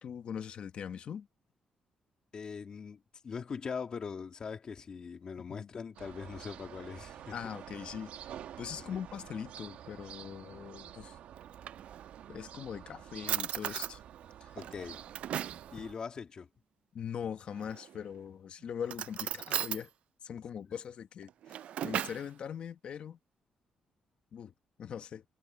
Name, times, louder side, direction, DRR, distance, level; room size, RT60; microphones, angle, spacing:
voice 1, 0.0-1.3 5.4-5.7 7.3-8.3 8.6-11.2 12.3-14.0 14.4-14.5 15.8-15.9 16.9-19.9 20.2-23.2 24.3-24.5 24.8-25.2, left 8 dB, 55° left, 1.2 m, -41 dB
voice 2, 2.3-7.3 8.8-9.0 14.6-15.0 15.7-16.5, left 6 dB, 40° left, 2.3 m, -41 dB
sound 1, 6.0-15.9, right 10 dB, 85° right, 1.3 m, -49 dB
Drawer open or close, 11.4-12.3 12.9-13.0 13.3-14.0 14.6-15.7 17.5-18.1 18.8-19.8 21.2-22.3, right 10 dB, 65° right, 0.3 m, -37 dB
wide cardioid pair, 155°, 2 cm